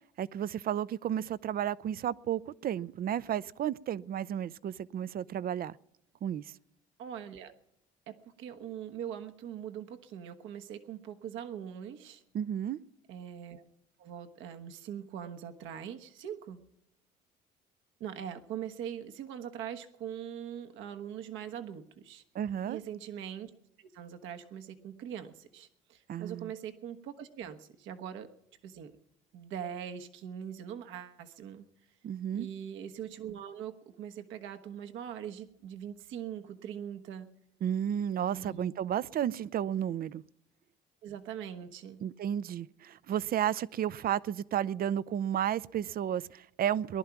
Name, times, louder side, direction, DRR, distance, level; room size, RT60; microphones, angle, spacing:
voice 1, 0.2-5.8 6.2-6.4 12.3-12.8 22.3-22.8 26.1-26.5 32.0-32.5 37.6-40.2 42.0-47.0, right 10 dB, 45° right, 0.5 m, -32 dB
voice 2, 7.0-7.5 8.1-12.2 13.1-13.6 14.0-16.6 18.0-22.2 22.6-23.5 23.8-28.3 28.6-28.9 29.3-31.7 32.3-37.3 38.3-38.6 41.0-42.0, right 9 dB, 70° right, 1.3 m, -42 dB
19.0 x 11.5 x 5.9 m
supercardioid pair, 70°, 21 cm